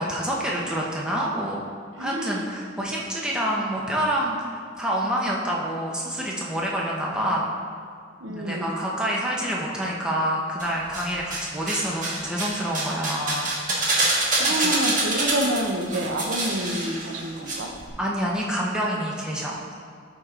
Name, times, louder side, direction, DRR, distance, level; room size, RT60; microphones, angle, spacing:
voice 1, 0.0-1.6 2.0-7.5 8.3-14.2 14.6-14.7 18.0-19.6, equal, 5° right, -4 dB, 1.0 m, -27 dB
voice 2, 2.0-2.5 8.2-8.9 14.3-17.7, right 1 dB, 80° right, 3 dB, 0.8 m, -28 dB
sound 1, 10.6-11.4 11.7-17.5 17.8-17.9, right 2 dB, 40° right, 1.5 m, -25 dB
13.0 x 4.8 x 3.8 m, 2.2 s
head